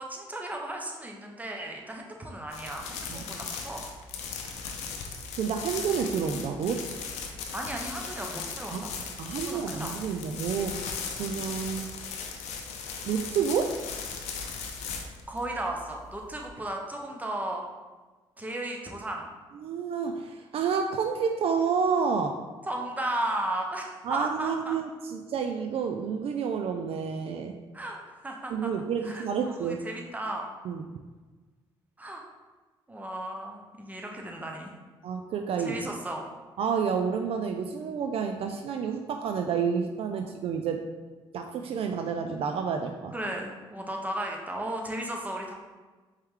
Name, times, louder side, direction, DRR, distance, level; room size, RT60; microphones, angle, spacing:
voice 1, 0.0-3.8 7.5-8.9 9.3-9.9 11.2-11.3 15.3-17.6 18.4-19.3 22.7-24.8 27.7-28.7 29.0-30.5 32.0-32.2 32.9-34.7 35.6-36.3 40.1-40.2 43.1-45.5, right 1 dB, 15° right, 0 dB, 0.9 m, -35 dB
sound 1, 2.5-16.5, left 5 dB, 80° left, 0.6 m, -38 dB
voice 2, 5.4-6.9 8.7-8.9 9.2-10.8 11.1-11.9 13.0-13.8 19.6-22.4 24.0-27.5 28.5-29.8 30.6-30.9 35.0-35.8 36.6-40.9 41.3-43.1, right 6 dB, 60° right, 5 dB, 0.4 m, -29 dB
4.4 x 3.2 x 3.7 m, 1.3 s
supercardioid pair, 65°, 11 cm